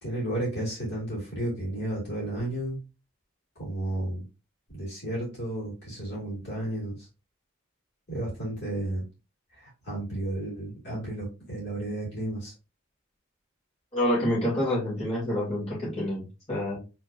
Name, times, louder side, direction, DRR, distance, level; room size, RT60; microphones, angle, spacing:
voice 1, 0.0-2.8 3.6-4.2 4.7-7.1 8.1-9.0 9.5-12.5, right 1 dB, 50° left, -4 dB, 2.4 m, -32 dB
voice 2, 13.9-16.8, left 1 dB, 25° left, -7 dB, 2.4 m, -27 dB
4.8 x 3.7 x 2.6 m, 0.29 s
head